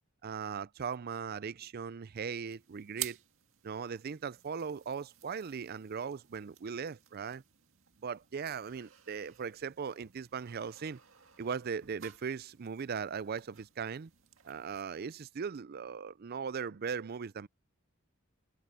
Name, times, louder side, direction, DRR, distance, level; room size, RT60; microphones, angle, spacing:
voice 1, 0.2-3.2 3.6-7.4 8.0-11.0 11.4-14.1 14.4-17.5, right 6 dB, 45° right, 0.4 m, -39 dB
sound 1, 2.5-15.3, right 13 dB, 70° right, 2.1 m, -51 dB
head